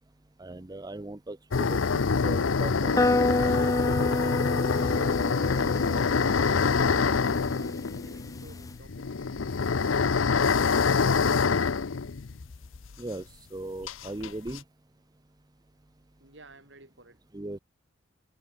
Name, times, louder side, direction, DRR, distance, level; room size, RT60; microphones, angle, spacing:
voice 1, 0.4-3.4 13.0-13.2 13.5-14.6 17.3-17.6, right 1 dB, 20° right, 0.7 m, -38 dB
sound 1, 1.5-12.9 13.2-13.3 13.9-14.6, left 5 dB, 85° left, 0.7 m, -26 dB
sound 2, 3.0-8.7, left 2 dB, 20° left, 0.6 m, -29 dB
voice 2, 4.5-11.6 16.2-17.2, right 2 dB, 65° right, 7.7 m, -54 dB
head